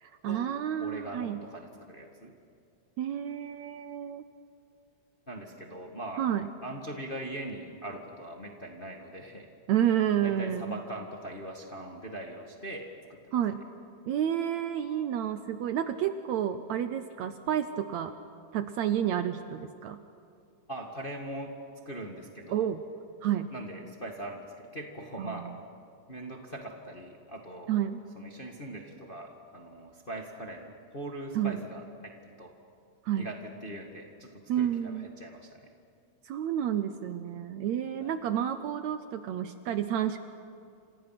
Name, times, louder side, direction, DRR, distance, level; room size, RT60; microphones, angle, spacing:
voice 1, 0.0-1.4 3.0-4.3 6.2-6.4 9.7-10.8 13.3-13.6 14.1-18.1 18.5-20.0 22.5-22.8 23.2-23.5 25.2-25.4 27.7-28.0 31.4-31.6 33.0-33.3 34.5-35.1 36.2-40.2, right 10 dB, 70° right, 10 dB, 1.8 m, -30 dB
voice 2, 0.8-2.3 5.3-6.2 6.6-9.5 10.2-13.4 20.7-21.6 21.8-22.7 23.5-25.5 26.1-27.8 28.1-32.5 33.1-35.7 38.0-38.2, right 1 dB, 25° left, 2 dB, 1.3 m, -41 dB
29.5 x 27.0 x 5.9 m, 2.4 s
omnidirectional pair, 3.8 m